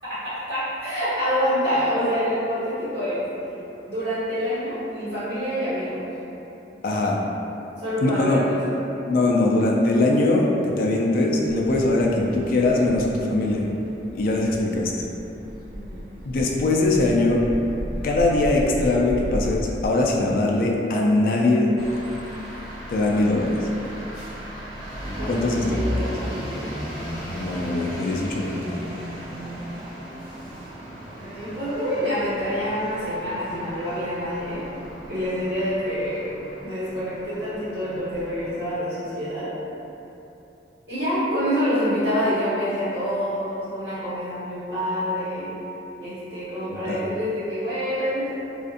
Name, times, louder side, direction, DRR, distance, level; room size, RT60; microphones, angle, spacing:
voice 1, 0.5-3.3 3.8-6.1 7.8-8.8 15.7-16.0 25.2-26.6 31.2-34.6 35.1-39.5 40.9-45.5 46.0-48.3, equal, 70° right, -14 dB, 1.1 m, -27 dB
voice 2, 6.8-7.2 8.0-8.4 9.1-13.7 14.1-14.9 16.2-17.4 18.0-21.7 22.9-23.6 25.3-25.6 26.0-26.1 27.3-28.8 46.7-47.0, left 2 dB, 50° left, -2 dB, 0.3 m, -21 dB
sound 1, 11.4-19.9, equal, 55° right, 0.4 m, -35 dB
sound 2, 21.8-38.7, equal, ahead, 0.7 m, -35 dB
2.6 x 2.4 x 2.5 m, 2.9 s
head